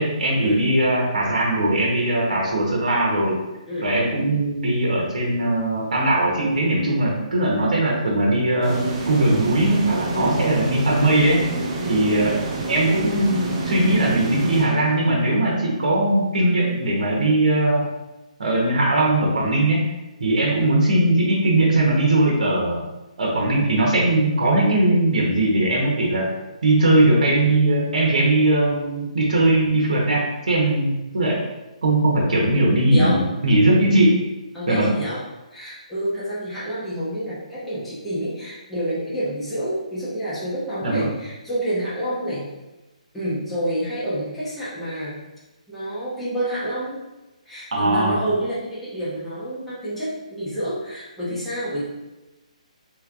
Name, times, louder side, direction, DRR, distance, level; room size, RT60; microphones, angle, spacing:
voice 1, 0.0-3.4 3.8-11.4 11.9-12.4 12.7-17.8 18.4-19.8 20.2-22.8 23.2-26.3 26.6-30.9 31.1-31.4 31.8-34.2 34.7-34.9 40.8-41.1 47.7-48.2 51.3-51.4, right 1 dB, 80° right, -3 dB, 0.9 m, -19 dB
sound 1, 8.6-15.4, right 3 dB, 25° right, 0.5 m, -28 dB
voice 2, 32.9-33.2 34.5-35.2 35.5-42.5 43.1-45.2 45.7-47.0 47.5-51.8, right 1 dB, 5° left, -13 dB, 0.9 m, -28 dB
3.2 x 3.1 x 2.4 m, 1.0 s
hypercardioid pair, 160°, 4 cm